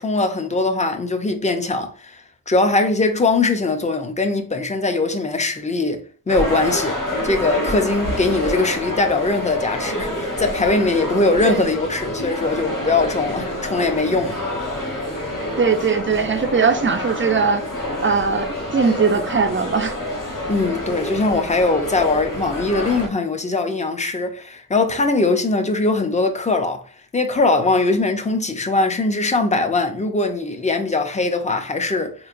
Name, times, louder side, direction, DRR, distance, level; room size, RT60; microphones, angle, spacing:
voice 1, 0.0-14.4 20.5-26.8 27.1-32.1, left 3 dB, 20° left, 0.5 m, -21 dB
sound 1, 6.3-23.1, left 1 dB, 55° left, 1.0 m, -27 dB
voice 2, 15.6-17.6 18.0-19.9, right 5 dB, 35° right, 0.4 m, -20 dB
4.3 x 3.0 x 2.4 m
wide cardioid pair, 125°, 38 cm